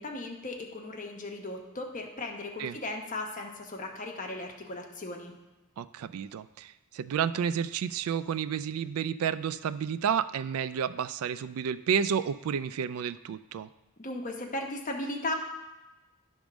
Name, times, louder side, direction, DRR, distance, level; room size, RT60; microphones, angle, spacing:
voice 1, 0.0-5.3 14.0-15.3, left 2 dB, 35° left, 1 dB, 1.1 m, -36 dB
voice 2, 5.8-13.7, right 7 dB, 70° right, 15 dB, 0.3 m, -31 dB
10.5 x 3.6 x 6.1 m, 1.1 s
head